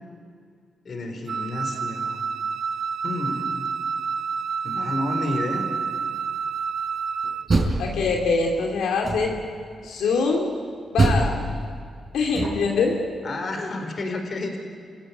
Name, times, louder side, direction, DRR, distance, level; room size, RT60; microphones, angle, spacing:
voice 1, 0.8-2.2 3.0-3.7 4.6-5.6 13.2-14.6, left 2 dB, 50° left, 5 dB, 4.5 m, -30 dB
Wind instrument woodwind instrument, 1.3-7.5, right 6 dB, 65° right, 0.8 m, -29 dB
Door, 7.2-8.5 9.0-9.6 11.0-12.9, right 2 dB, 40° right, 5.2 m, -24 dB
voice 2, 7.8-9.4 9.8-10.5 10.9-11.4 12.1-13.0, left 4 dB, 90° left, 0 dB, 2.8 m, -23 dB
29.0 x 16.5 x 9.6 m, 2.2 s
cardioid pair, 85°, 0 cm